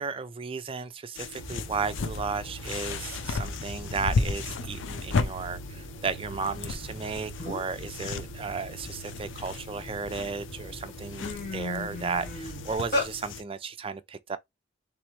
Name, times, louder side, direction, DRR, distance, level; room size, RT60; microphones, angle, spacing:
voice 1, 0.0-14.4, right 5 dB, 30° right, 0.4 m, -34 dB
sound 1, 1.2-13.4, left 4 dB, 85° left, 0.4 m, -35 dB
sound 2, 1.4-12.8, right 2 dB, 35° left, 1.5 m, -43 dB
sound 3, 7.0-7.1 7.4-7.8 8.3-9.8 10.4-10.6 10.9-13.1, left 2 dB, 50° left, 1.7 m, -33 dB
3.4 x 3.0 x 3.0 m
head